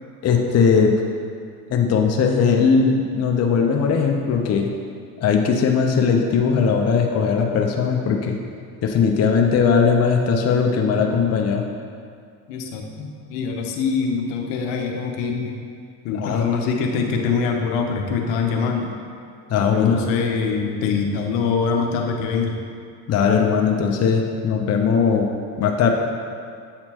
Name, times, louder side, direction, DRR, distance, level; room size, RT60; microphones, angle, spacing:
voice 1, 0.2-0.9 1.7-4.7 5.2-8.4 8.8-11.6 16.1-16.4 19.5-20.0 23.1-25.3 25.6-25.9, left 6 dB, 35° left, 1 dB, 0.6 m, -19 dB
voice 2, 12.5-15.5 16.0-18.9 19.7-22.6, left 5 dB, 70° left, 2 dB, 0.9 m, -24 dB
7.7 x 4.3 x 2.8 m, 2.3 s
hypercardioid pair, 80°, 47 cm